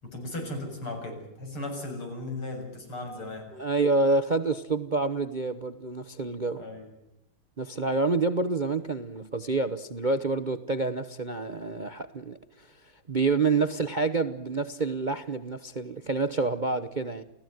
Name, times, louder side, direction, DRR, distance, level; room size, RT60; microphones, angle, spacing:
voice 1, 0.0-3.5 6.6-6.9, left 2 dB, 80° left, 8.0 m, -36 dB
voice 2, 3.5-6.6 7.6-12.4 13.1-17.2, right 3 dB, 45° right, 0.6 m, -28 dB
29.5 x 17.0 x 9.3 m
omnidirectional pair, 2.4 m